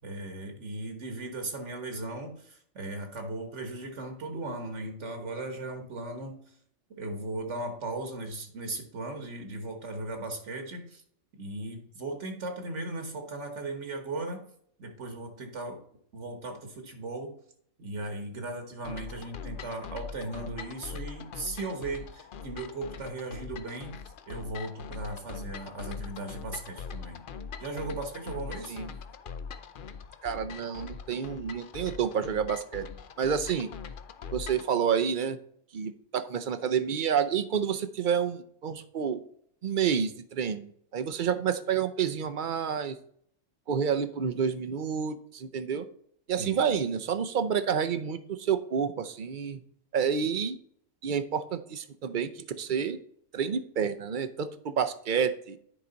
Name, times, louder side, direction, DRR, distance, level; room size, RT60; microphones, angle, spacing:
voice 1, 0.0-6.4 6.9-11.0 11.4-14.4 14.8-15.8 16.1-17.3 17.8-23.9 24.3-27.2 27.6-28.8 46.4-46.7, right 2 dB, 65° right, 4 dB, 1.6 m, -37 dB
sound 1, 18.8-34.7, left 6 dB, 55° left, 0.6 m, -42 dB
voice 2, 30.2-32.8 33.2-33.7 34.3-35.4 35.7-39.2 39.6-43.0 43.7-45.9 46.3-49.6 49.9-50.6 51.0-53.0 53.3-55.6, right 7 dB, 50° right, 11 dB, 0.7 m, -29 dB
10.0 x 4.9 x 3.9 m, 0.64 s
omnidirectional pair, 1.3 m